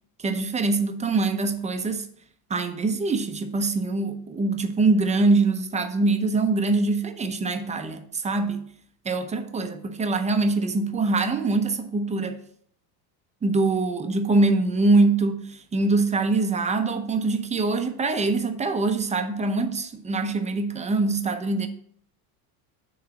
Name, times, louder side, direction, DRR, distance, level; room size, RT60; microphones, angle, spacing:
voice 1, 0.2-2.1 2.5-8.7 9.0-12.4 13.4-21.7, right 3 dB, 15° right, 0.5 m, -24 dB
7.7 x 3.1 x 5.8 m
supercardioid pair, 115°, 48 cm